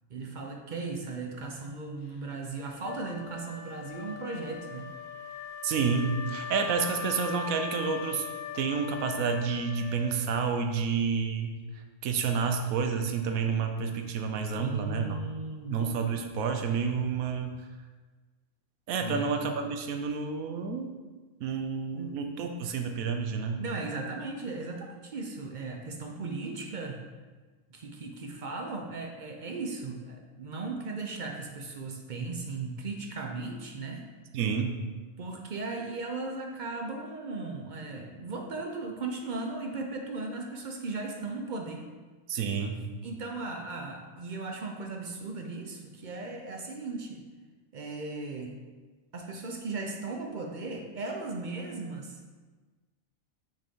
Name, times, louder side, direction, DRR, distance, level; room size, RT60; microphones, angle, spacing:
voice 1, 0.1-4.9 5.3-5.4 14.6-15.8 19.0-19.3 21.9-22.5 23.6-27.0 27.7-34.1 35.2-41.9 43.0-47.2 47.7-48.5 49.1-52.2, right 3 dB, 50° right, 2 dB, 0.6 m, -37 dB
Wind instrument woodwind instrument, 2.8-10.4, left 5 dB, 75° left, 0.9 m, -40 dB
voice 2, 5.6-8.3 8.5-11.6 12.0-15.2 15.7-17.6 18.9-20.9 21.4-23.6 34.3-34.8 42.3-42.8, right 5 dB, 85° right, 5 dB, 1.1 m, -29 dB
6.3 x 4.2 x 3.6 m, 1.3 s
omnidirectional pair, 1.4 m